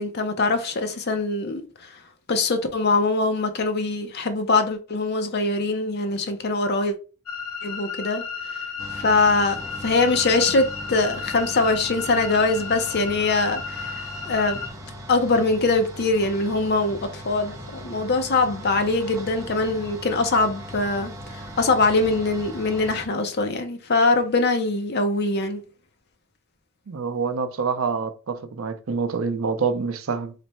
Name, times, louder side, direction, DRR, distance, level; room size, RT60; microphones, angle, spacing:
voice 1, 0.0-2.0 2.3-6.9 7.6-8.2 8.5-8.6 8.9-14.6 15.1-25.6, left 3 dB, 45° left, 0.6 m, -23 dB
sound 1, 7.3-14.7, left 5 dB, 75° left, 0.9 m, -34 dB
sound 2, 8.8-23.1, equal, 15° right, 0.6 m, -39 dB
voice 2, 26.9-30.3, right 5 dB, 65° right, 0.5 m, -26 dB
3.3 x 2.1 x 4.2 m
head